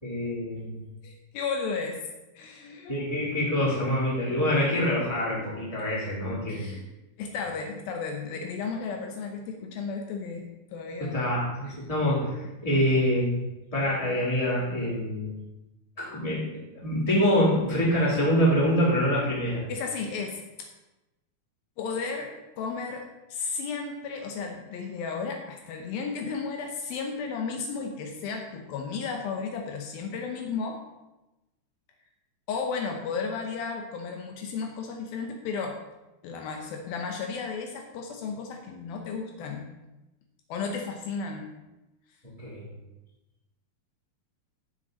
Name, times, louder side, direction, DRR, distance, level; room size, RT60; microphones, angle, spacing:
voice 1, 0.0-0.8 2.9-6.7 11.0-13.4 13.7-15.4 16.0-19.6 42.4-42.7, equal, 10° left, -7 dB, 2.9 m, -25 dB
voice 2, 1.0-2.0 2.4-2.9 5.3-5.4 5.8-5.9 6.5-6.8 7.2-11.1 19.7-20.7 21.8-30.8 32.5-35.8 36.2-39.7 40.5-41.5, left 5 dB, 75° left, 3 dB, 2.6 m, -34 dB
14.5 x 6.4 x 4.0 m, 1.0 s
omnidirectional pair, 4.4 m